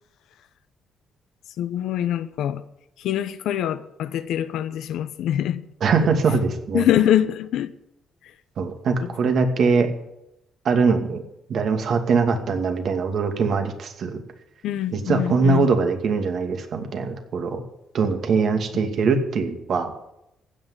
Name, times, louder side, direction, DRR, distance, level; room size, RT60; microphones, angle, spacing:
voice 1, 1.6-2.6 3.0-5.6 6.7-7.7 9.0-9.1 14.6-15.7, left 11 dB, 85° left, 0.8 m, -24 dB
voice 2, 5.8-6.9 8.6-9.9 10.6-11.2 11.5-14.2 14.9-17.6 17.9-19.9, right 4 dB, 60° right, 2.4 m, -22 dB
15.5 x 6.5 x 9.8 m
cardioid pair, 90°, 0 cm